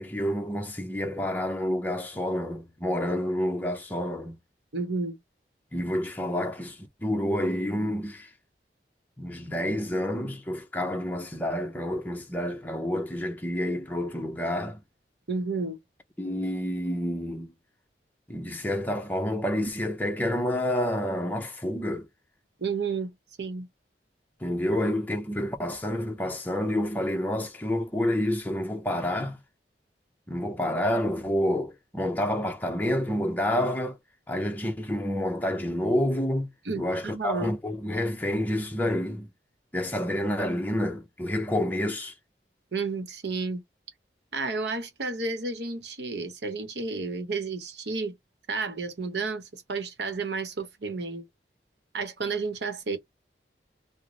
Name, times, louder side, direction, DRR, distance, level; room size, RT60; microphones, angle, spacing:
voice 1, 0.0-4.4 5.7-8.3 9.2-14.8 16.2-17.5 18.3-22.1 24.4-29.4 30.3-34.0 34.3-36.5 36.8-39.3 39.7-42.1, left 1 dB, 10° left, 0.6 m, -29 dB
voice 2, 4.7-5.2 15.3-15.8 22.6-23.1 23.4-23.7 36.7-37.5 42.7-43.6 44.3-48.1 48.5-51.2 51.9-53.0, right 4 dB, 75° right, 0.9 m, -31 dB
3.1 x 2.1 x 3.8 m
head